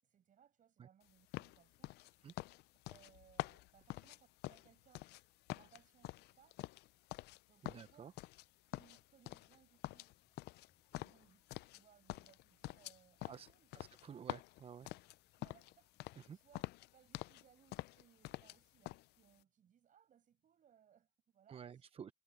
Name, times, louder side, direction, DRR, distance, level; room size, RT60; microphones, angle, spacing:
voice 1, 0.0-2.2 2.9-5.1 5.5-6.6 7.5-8.1 8.7-10.1 10.9-13.7 14.1-14.2 15.4-15.9 16.3-16.6 16.9-21.9, right 9 dB, 50° right, 7.2 m, -68 dB
sound 1, 1.2-19.0, left 5 dB, 30° left, 5.2 m, -84 dB
sound 2, 1.3-5.2 5.5-7.4 7.7-8.5 8.7-9.6 9.8-11.8 12.1-15.7 16.0-16.3 16.5-17.4 17.7-18.6 18.9-19.1, left 18 dB, 75° left, 0.4 m, -47 dB
voice 2, 7.6-8.1 13.3-13.5 13.7-14.9 16.2-16.4 21.5-22.1, right 7 dB, 35° right, 0.6 m, -52 dB
cardioid pair, 110°, 17 cm